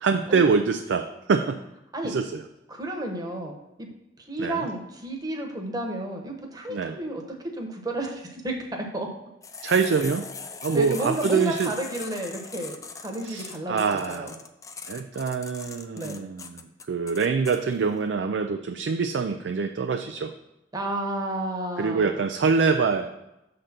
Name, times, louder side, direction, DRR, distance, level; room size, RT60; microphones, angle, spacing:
voice 1, 0.0-1.6 2.0-2.5 4.4-4.7 6.7-7.0 9.6-10.3 10.6-11.7 13.2-14.4 14.9-20.3 21.8-23.1, right 5 dB, 75° right, 6 dB, 0.4 m, -25 dB
voice 2, 2.7-3.9 4.3-7.2 7.5-9.1 10.7-13.7 14.1-14.3 16.0-16.2 20.7-22.1, right 1 dB, 20° right, 2 dB, 1.1 m, -31 dB
sound 1, 9.4-17.6, left 5 dB, 20° left, 0.4 m, -40 dB
6.6 x 3.9 x 5.8 m, 0.93 s
head